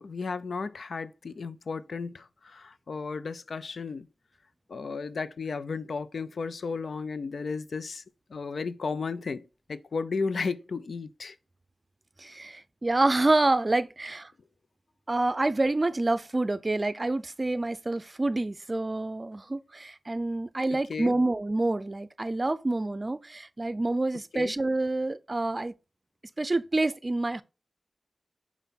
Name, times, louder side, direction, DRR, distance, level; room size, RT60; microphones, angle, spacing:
voice 1, 0.0-4.1 4.7-8.0 8.3-11.3 20.7-21.1 24.3-24.5, left 4 dB, 85° left, 0.4 m, -34 dB
voice 2, 12.2-14.3 15.1-25.7 26.4-27.4, right 2 dB, 35° right, 0.5 m, -27 dB
5.6 x 4.6 x 4.0 m
wide cardioid pair, 90°, 0 cm